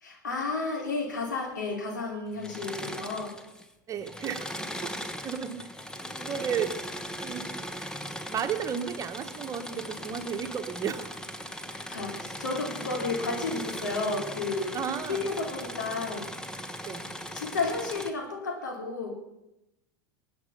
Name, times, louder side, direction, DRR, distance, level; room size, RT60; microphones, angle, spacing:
voice 1, 0.0-3.4 11.7-14.8 15.1-16.3 17.3-19.1, left 3 dB, 85° left, 3 dB, 3.1 m, -32 dB
Engine / Mechanisms, 2.3-3.7 4.0-18.1, equal, 5° left, 1.3 m, -39 dB
voice 2, 3.9-4.9 5.2-5.7 6.2-6.8 7.2-7.5 8.2-11.2 14.7-15.3 16.8-17.0, right 7 dB, 35° right, 8 dB, 1.4 m, -33 dB
20.5 x 8.8 x 5.6 m, 0.92 s
hypercardioid pair, 90°, 10 cm